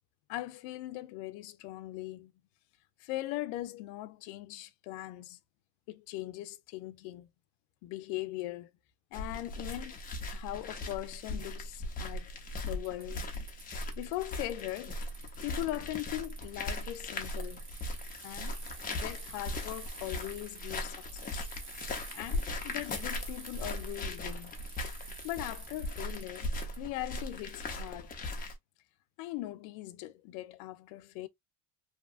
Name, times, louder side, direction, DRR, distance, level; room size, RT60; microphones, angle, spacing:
voice 1, 0.3-2.3 3.0-5.4 5.9-7.3 7.8-8.7 9.1-10.0 10.3-12.3 12.6-13.3 14.0-15.0 15.4-17.7 18.2-18.6 18.9-21.4 22.1-24.5 25.2-28.1 29.2-31.3, left 16 dB, 75° left, 0.5 m, -40 dB
sound 1, 9.1-28.5, left 2 dB, 20° left, 0.6 m, -39 dB
Bicycle, 12.7-26.8, right 4 dB, 30° right, 0.9 m, -50 dB
2.8 x 2.3 x 2.4 m
cardioid pair, 135°, 42 cm